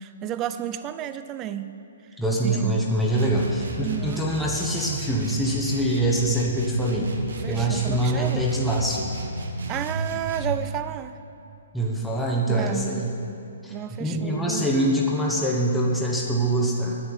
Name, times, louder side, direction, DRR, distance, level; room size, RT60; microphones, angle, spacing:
voice 1, 0.0-1.7 2.4-2.8 3.8-4.2 7.4-8.4 9.7-11.2 12.5-13.0 13.7-14.8, right 11 dB, 20° right, 12 dB, 0.4 m, -32 dB
voice 2, 2.2-7.1 7.5-9.1 11.7-13.1 13.6-13.7 14.0-17.0, right 1 dB, ahead, -4 dB, 1.0 m, -24 dB
sound 1, 3.1-10.6, right 1 dB, 80° right, 1.6 m, -32 dB
10.0 x 7.2 x 8.7 m, 2.6 s
hypercardioid pair, 160°, 0 cm